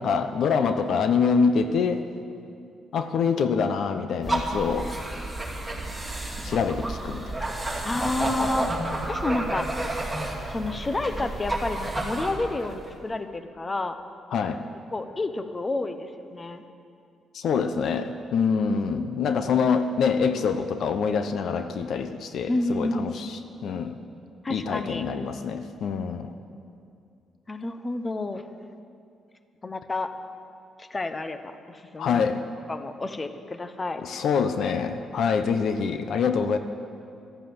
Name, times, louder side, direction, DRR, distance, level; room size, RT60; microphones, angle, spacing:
voice 1, 0.0-2.1 2.9-5.0 6.4-7.8 14.3-14.6 17.3-24.0 24.5-26.3 32.0-32.5 34.0-36.6, left 6 dB, 65° left, 9 dB, 0.8 m, -25 dB
sound 1, 4.2-12.9, right 1 dB, 5° right, 2.6 m, -31 dB
voice 2, 7.8-9.7 10.5-13.9 14.9-16.6 22.5-23.3 24.4-25.0 27.5-28.4 29.6-30.1 30.8-32.2 32.7-34.0, left 2 dB, 25° left, 9 dB, 0.9 m, -30 dB
12.5 x 12.0 x 7.9 m, 2.5 s
cardioid pair, 90°, 0 cm